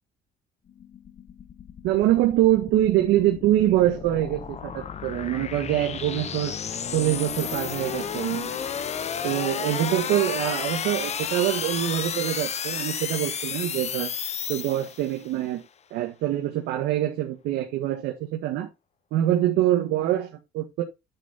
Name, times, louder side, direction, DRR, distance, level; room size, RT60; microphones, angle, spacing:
sound 1, 0.7-15.3, left 7 dB, 40° left, 1.0 m, -32 dB
voice 1, 1.8-6.6 6.9-8.6 9.2-14.1 14.5-15.6 15.9-18.7 19.1-20.8, right 13 dB, 85° right, 1.9 m, -24 dB
10.0 x 5.9 x 4.3 m
cardioid pair, 110°, 17 cm